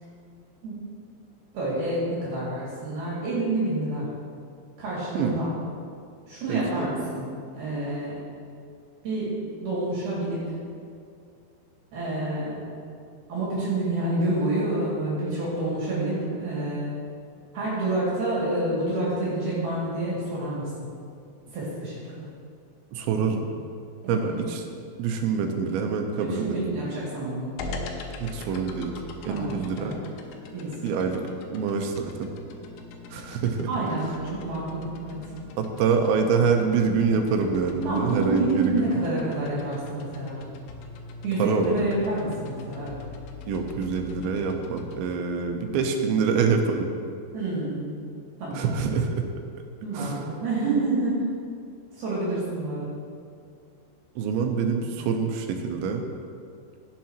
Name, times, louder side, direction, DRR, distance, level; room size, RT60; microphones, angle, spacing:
voice 1, 1.5-4.1 4.8-5.5 6.3-8.2 9.0-10.6 11.9-12.7 13.3-17.0 17.5-20.7 21.5-22.3 24.0-24.4 26.2-27.5 29.3-29.5 29.8-29.9 30.5-30.9 33.7-35.2 37.9-40.4 41.2-43.0 47.3-48.0 48.4-48.7 49.8-51.2 52.0-53.0, right 2 dB, 60° right, -8 dB, 4.2 m, -28 dB
voice 2, 6.5-6.9 22.9-23.5 24.1-24.6 25.0-26.6 28.2-28.9 29.2-29.9 30.8-31.2 31.5-32.3 33.1-33.7 35.6-39.0 41.4-41.9 43.5-46.9 48.5-49.2 49.9-50.3 54.2-56.0, right 5 dB, 85° right, 4 dB, 3.1 m, -25 dB
sound 1, 27.6-45.0, left 3 dB, 80° left, 2.9 m, -41 dB
17.0 x 7.5 x 3.0 m, 2.3 s
omnidirectional pair, 5.3 m